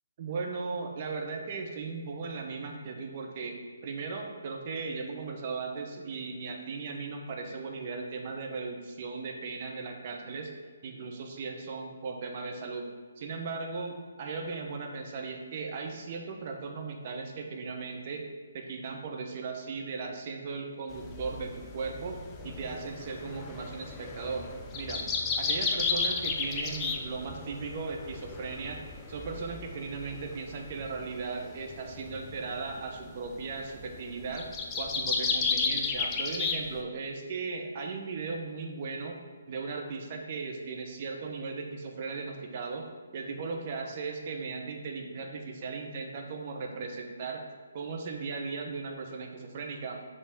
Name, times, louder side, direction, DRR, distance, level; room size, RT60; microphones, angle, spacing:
voice 1, 0.2-3.6 3.8-10.5 10.8-12.9 13.2-18.2 18.5-24.4 24.7-25.1 25.4-28.8 29.1-34.5 34.8-39.2 39.5-42.8 43.1-47.4 47.7-50.0, right 4 dB, 40° right, 2 dB, 1.0 m, -37 dB
sound 1, 20.9-36.8, left 4 dB, 15° left, 0.5 m, -34 dB
6.4 x 3.7 x 5.3 m, 1.5 s
figure-of-eight pair, 140°, 0 cm